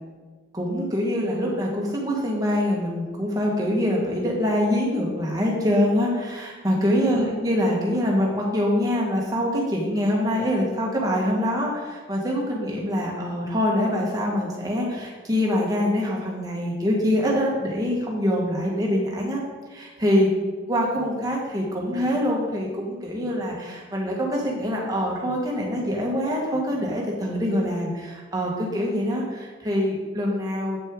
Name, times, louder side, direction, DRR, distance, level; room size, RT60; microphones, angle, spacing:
voice 1, 0.5-19.4 19.7-20.3 20.7-30.8, equal, 20° right, -3 dB, 1.5 m, -24 dB
8.5 x 6.3 x 3.8 m, 1.4 s
head